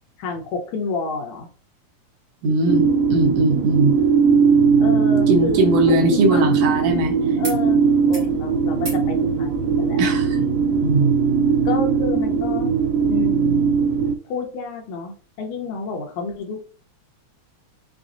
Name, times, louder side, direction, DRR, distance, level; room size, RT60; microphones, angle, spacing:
voice 1, 0.2-1.5 4.8-6.6 7.4-9.5 9.8-10.1 11.7-12.7 13.1-13.6 14.2-16.6, left 3 dB, 75° left, 2 dB, 2.1 m, -30 dB
voice 2, 2.4-3.9 5.3-7.2 10.0-10.5 10.8-11.2, right 2 dB, 70° right, 2 dB, 1.8 m, -20 dB
sound 1, 2.7-14.1, right 5 dB, 85° right, 2.0 m, -19 dB
sound 2, 7.4-7.6 7.9-8.3 8.8-9.1 10.4-10.5, right 1 dB, 50° right, 0.6 m, -38 dB
5.9 x 2.0 x 2.5 m, 0.38 s
omnidirectional pair, 3.4 m